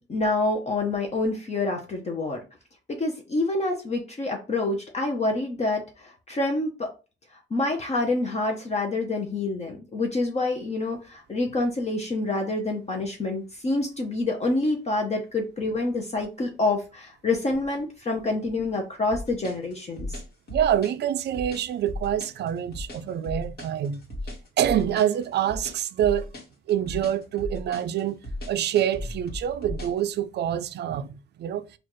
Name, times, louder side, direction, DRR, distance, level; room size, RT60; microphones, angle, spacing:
voice 1, 0.0-2.4 2.9-6.9 7.5-20.2, left 2 dB, 35° left, 0.8 m, -27 dB
sound 1, 19.1-30.0, left 1 dB, 50° left, 1.5 m, -36 dB
voice 2, 20.5-24.0 24.6-26.3 26.7-28.2 28.5-31.6, right 10 dB, 60° right, 0.4 m, -26 dB
4.2 x 2.4 x 3.0 m
cardioid pair, 90°, 20 cm